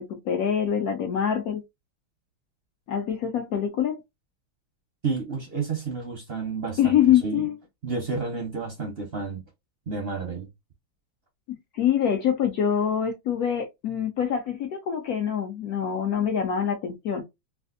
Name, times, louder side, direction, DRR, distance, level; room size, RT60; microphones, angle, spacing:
voice 1, 0.0-1.6 2.9-4.0 6.8-7.5 11.5-17.2, left 9 dB, 75° left, 0.8 m, -25 dB
voice 2, 5.0-7.4 7.8-9.4 9.9-10.5, right 4 dB, 55° right, 0.6 m, -31 dB
3.3 x 2.5 x 2.4 m
omnidirectional pair, 2.1 m